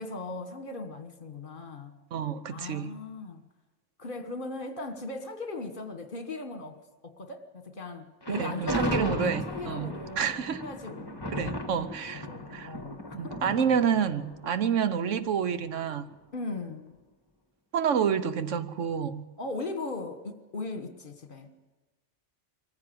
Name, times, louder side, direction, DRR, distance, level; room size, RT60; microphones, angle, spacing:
voice 1, 0.0-2.0 2.5-3.4 4.0-11.4 12.1-13.7 16.3-17.0 19.4-21.5, left 2 dB, 45° left, 1.5 m, -38 dB
voice 2, 2.1-3.0 8.3-9.9 10.2-10.6 11.3-12.7 13.1-16.1 17.7-19.2, right 7 dB, 85° right, 1.2 m, -29 dB
Thunder, 8.2-15.4, left 1 dB, 20° left, 1.4 m, -36 dB
23.0 x 15.0 x 7.8 m
omnidirectional pair, 1.2 m